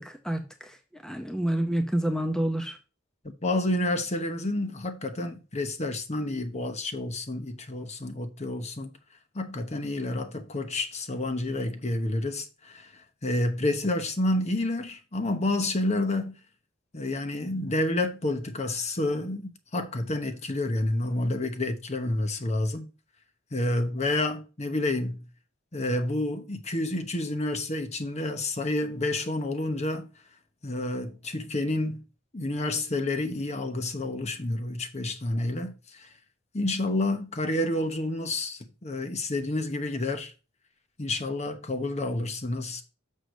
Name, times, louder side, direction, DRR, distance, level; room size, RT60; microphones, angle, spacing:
voice 1, 0.0-2.8, right 1 dB, 5° left, 0.7 m, -29 dB
voice 2, 3.2-8.9 9.3-16.4 16.9-22.9 23.5-25.2 25.7-30.1 30.6-32.0 32.3-36.1 36.5-40.3 41.0-42.8, left 2 dB, 35° left, 1.0 m, -29 dB
6.4 x 4.9 x 6.3 m
head